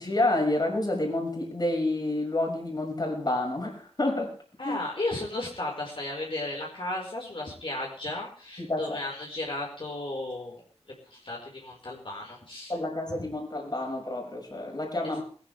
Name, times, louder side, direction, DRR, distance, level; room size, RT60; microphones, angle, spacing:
voice 1, 0.0-4.3 4.6-4.8 8.6-9.0 12.7-15.2, left 2 dB, 45° left, 2 dB, 6.1 m, -29 dB
voice 2, 4.6-10.6 11.0-12.8 13.1-13.2 15.0-15.2, left 2 dB, 60° left, -2 dB, 5.1 m, -34 dB
21.0 x 14.5 x 3.5 m, 0.42 s
wide cardioid pair, 75°, 10 cm